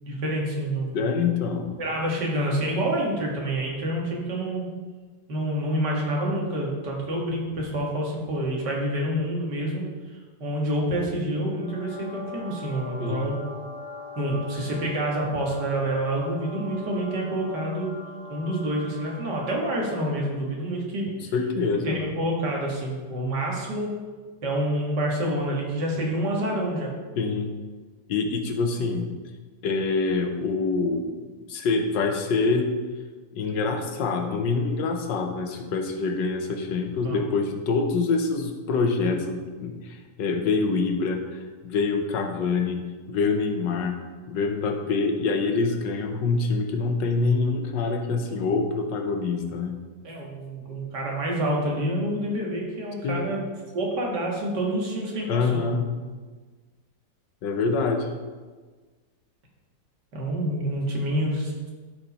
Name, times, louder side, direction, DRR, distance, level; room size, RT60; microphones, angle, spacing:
voice 1, 0.0-1.0 1.8-4.7 5.3-13.4 14.2-17.9 18.3-21.3 21.8-24.0 24.4-26.9 37.0-37.3 50.0-53.4 53.7-55.6 60.1-61.7, right 1 dB, 70° right, -2 dB, 2.4 m, -28 dB
voice 2, 0.9-1.8 13.0-13.3 21.1-22.0 27.2-27.5 28.1-29.1 29.6-31.1 31.5-32.7 33.3-44.0 44.3-49.8 53.0-53.2 55.3-55.9 57.4-58.1, left 4 dB, 90° left, 5 dB, 1.6 m, -25 dB
sound 1, 11.5-20.3, left 4 dB, 40° left, 0.5 m, -41 dB
12.0 x 4.9 x 4.2 m, 1.4 s
omnidirectional pair, 1.9 m